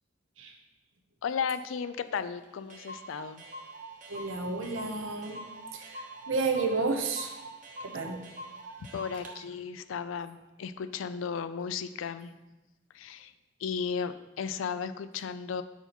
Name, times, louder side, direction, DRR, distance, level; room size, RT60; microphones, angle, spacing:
voice 1, 1.2-3.4 8.9-12.3 12.9-13.3 13.6-15.6, left 6 dB, 85° left, 12 dB, 0.4 m, -35 dB
Clock, 2.2-2.3 2.4-2.5 2.7-9.4, right 1 dB, 40° right, 1.0 m, -44 dB
voice 2, 4.1-5.4 5.7-7.4 7.8-8.2, right 3 dB, 85° right, 4 dB, 0.9 m, -31 dB
6.6 x 4.7 x 4.3 m, 1.1 s
head